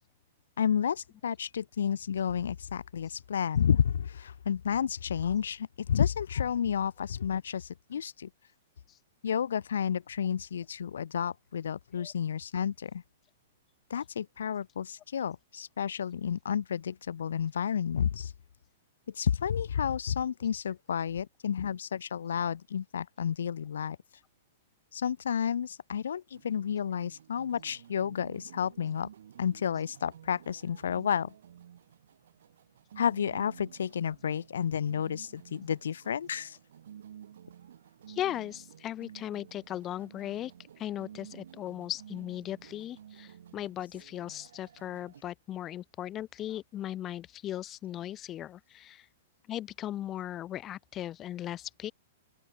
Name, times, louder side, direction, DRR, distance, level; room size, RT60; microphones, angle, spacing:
voice 1, 0.6-8.3 9.2-13.0 13.9-18.3 19.1-24.0 24.9-29.1 29.4-31.3 33.0-36.6, left 8 dB, 80° left, 0.8 m, -31 dB
sound 1, 26.3-45.2, right 9 dB, 75° right, 3.1 m, -53 dB
voice 2, 38.1-40.5 40.8-49.1 49.5-51.9, left 12 dB, 25° left, 2.0 m, -37 dB
open air
hypercardioid pair, 130°, 0 cm